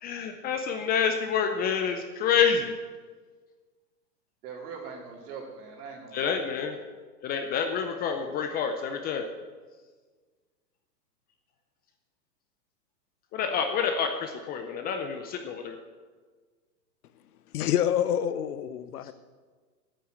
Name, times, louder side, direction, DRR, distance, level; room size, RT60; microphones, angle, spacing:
voice 1, 0.0-2.8 6.1-6.8 7.2-9.3 13.3-15.8, left 7 dB, 20° left, 5 dB, 0.6 m, -28 dB
voice 2, 4.4-6.4, right 5 dB, 65° right, -2 dB, 4.0 m, -41 dB
voice 3, 17.5-19.1, left 10 dB, 65° left, 13 dB, 0.9 m, -27 dB
9.0 x 8.4 x 8.2 m, 1.4 s
hypercardioid pair, 120°, 49 cm